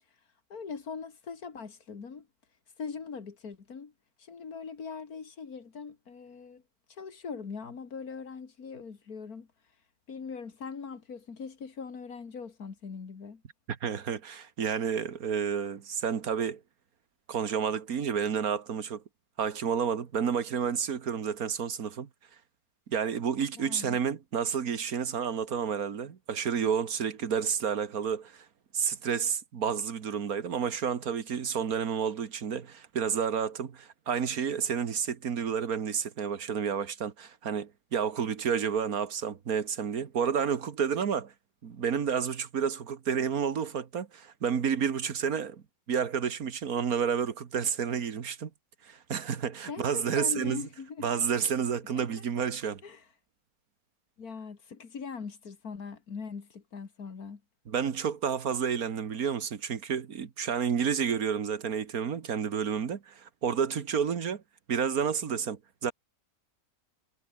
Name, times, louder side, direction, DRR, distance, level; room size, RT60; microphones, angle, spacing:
voice 1, 0.5-2.3 2.8-3.9 4.2-6.6 6.9-9.5 10.1-13.4 23.6-24.0 49.7-51.1 51.9-52.1 52.8-53.0 54.2-57.4, left 5 dB, 75° left, 2.6 m, -41 dB
voice 2, 13.7-16.6 17.3-19.0 19.4-22.1 22.9-28.5 28.7-41.3 41.6-48.5 48.8-50.6 51.0-52.8 57.7-64.4 64.7-65.9, right 7 dB, 70° right, 1.9 m, -30 dB
omnidirectional pair, 1.6 m